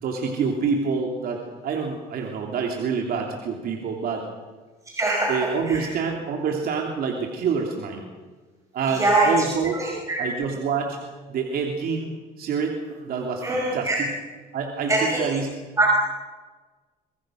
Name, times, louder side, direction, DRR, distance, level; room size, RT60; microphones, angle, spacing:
voice 1, 0.0-4.3 5.3-8.1 8.7-9.8 10.2-11.0 11.3-14.1 14.5-15.6, right 5 dB, 65° right, 2 dB, 3.1 m, -27 dB
voice 2, 5.0-5.4 5.7-5.9 9.0-9.3 9.7-10.2 13.4-14.0 14.9-15.2 15.8-16.0, right 2 dB, 20° right, -2 dB, 5.4 m, -22 dB
25.5 x 20.5 x 6.4 m, 1.3 s
cardioid pair, 110°, 17 cm